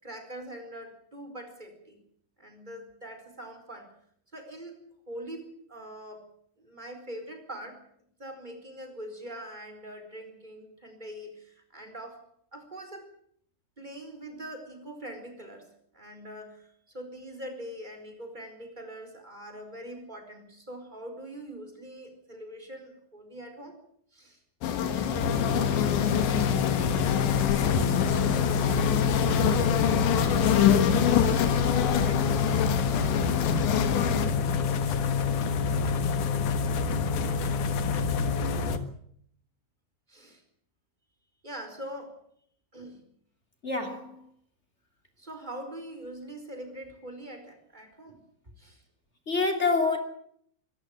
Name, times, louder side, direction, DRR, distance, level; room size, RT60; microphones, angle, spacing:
voice 1, 0.0-2.0 2.4-3.9 4.3-4.8 5.1-6.3 6.6-7.8 8.2-12.2 12.5-13.1 13.8-15.7 15.9-23.8 24.1-24.4 27.7-30.1 31.3-32.5 37.0-37.6 40.1-40.4 41.4-42.2 42.7-43.0 45.2-48.2 48.6-48.8, right 1 dB, 10° right, 4.2 m, -43 dB
sound 1, 24.6-34.3, left 9 dB, 85° left, 4.3 m, -26 dB
sound 2, 25.2-38.8, left 5 dB, 60° left, 2.3 m, -27 dB
voice 2, 43.6-44.2 49.3-50.0, left 3 dB, 20° left, 2.1 m, -26 dB
25.5 x 14.0 x 8.9 m
omnidirectional pair, 5.1 m